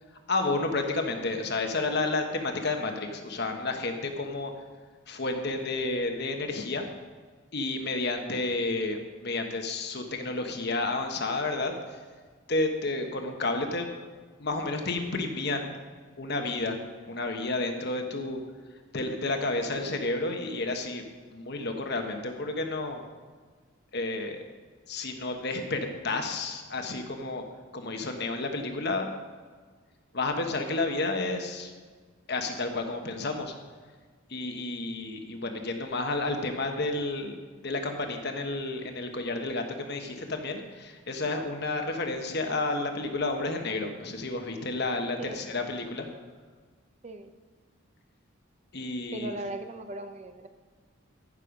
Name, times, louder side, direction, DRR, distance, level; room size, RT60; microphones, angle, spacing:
voice 1, 0.3-4.5 5.1-6.8 7.5-12.0 12.5-13.9 14.4-15.7 16.2-16.8 17.1-18.4 18.9-21.0 21.3-23.0 23.9-24.4 24.9-27.4 27.7-29.1 30.1-31.7 32.3-33.5 34.3-46.1 48.7-49.3, left 2 dB, 50° left, 4 dB, 1.2 m, -31 dB
voice 2, 49.1-50.5, right 1 dB, 30° right, 8 dB, 0.6 m, -38 dB
15.0 x 6.5 x 5.1 m, 1.5 s
head